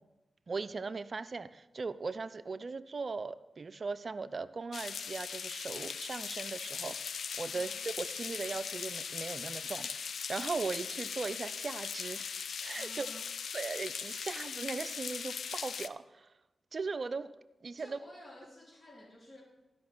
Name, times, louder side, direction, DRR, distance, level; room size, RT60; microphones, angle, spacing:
voice 1, 0.5-7.1 7.4-9.9 10.3-12.3 12.6-13.1 13.5-16.3 16.7-17.3 17.6-18.0, right 4 dB, 55° right, 15 dB, 0.5 m, -38 dB
sound 1, 4.7-15.9, left 6 dB, 80° left, 0.4 m, -39 dB
voice 2, 7.5-7.8 12.7-13.3 17.8-19.4, left 1 dB, 30° left, -2 dB, 3.8 m, -53 dB
12.0 x 5.8 x 6.1 m, 1.0 s
supercardioid pair, 40°, 0 cm